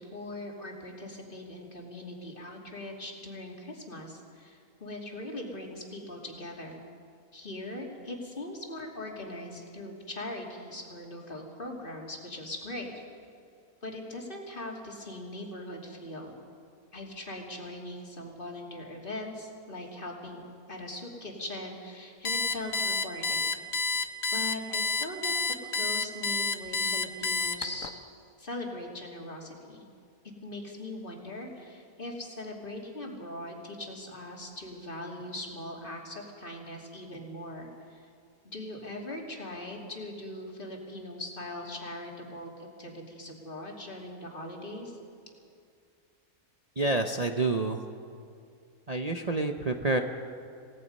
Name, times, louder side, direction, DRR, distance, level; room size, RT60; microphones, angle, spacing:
voice 1, 0.0-6.8 7.3-12.9 13.8-16.4 16.9-20.4 20.7-23.4 23.8-23.9 24.3-27.9 28.4-29.8 30.4-38.1 38.4-45.0, left 1 dB, 35° left, 0 dB, 2.9 m, -40 dB
Alarm, 22.2-27.9, left 4 dB, 60° left, 1.4 m, -29 dB
voice 2, 46.8-47.8 48.9-50.0, right 2 dB, 35° right, 4 dB, 0.7 m, -28 dB
28.0 x 17.5 x 5.4 m, 2.4 s
omnidirectional pair, 1.6 m